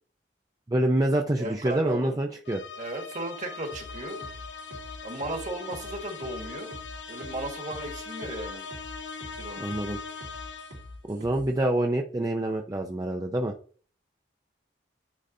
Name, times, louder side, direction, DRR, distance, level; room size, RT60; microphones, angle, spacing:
voice 1, 0.7-2.6 9.6-10.0 11.1-13.5, right 1 dB, 20° right, 2 dB, 0.5 m, -26 dB
voice 2, 1.4-2.2 2.8-4.2 5.0-6.8 7.1-8.6 9.4-9.6, right 1 dB, 45° right, 3 dB, 1.7 m, -35 dB
sound 1, 2.5-11.0, left 5 dB, 75° left, 0.9 m, -41 dB
sound 2, 3.7-11.5, left 1 dB, 80° right, 2.8 m, -45 dB
9.9 x 4.0 x 2.7 m, 0.43 s
head